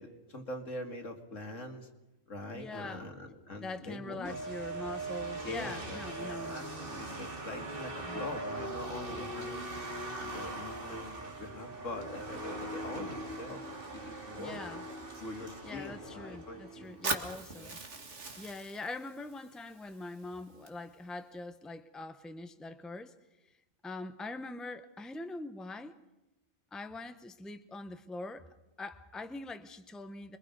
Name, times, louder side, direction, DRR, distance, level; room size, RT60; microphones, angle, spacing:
voice 1, 0.0-1.9 2.3-4.4 5.4-9.7 10.2-14.8 15.2-17.8, left 2 dB, 80° left, 2.8 m, -44 dB
voice 2, 2.5-3.1 3.6-7.1 8.0-8.3 14.4-14.8 15.6-17.8 18.4-23.1 23.8-25.9 26.7-28.4 28.8-30.4, left 2 dB, ahead, 0.8 m, -43 dB
sound 1, 4.2-17.3, right 2 dB, 45° right, 2.6 m, -41 dB
Fire, 17.0-21.1, right 3 dB, 65° right, 2.2 m, -41 dB
26.5 x 22.5 x 5.3 m
omnidirectional pair, 1.3 m